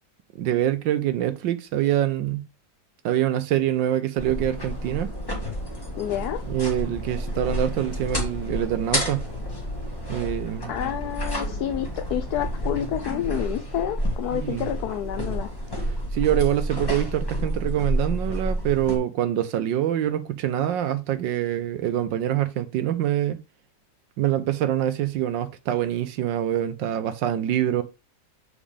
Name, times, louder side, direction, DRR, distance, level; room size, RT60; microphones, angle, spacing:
voice 1, 0.4-2.4 3.0-5.1 6.5-9.3 10.1-10.7 14.3-14.7 16.1-23.4 24.2-27.8, right 11 dB, 85° right, 1.4 m, -25 dB
sound 1, 4.2-19.0, equal, 15° left, 1.6 m, -30 dB
voice 2, 6.0-6.4 10.7-15.5, left 11 dB, 70° left, 1.0 m, -29 dB
7.3 x 5.0 x 3.3 m
omnidirectional pair, 2.0 m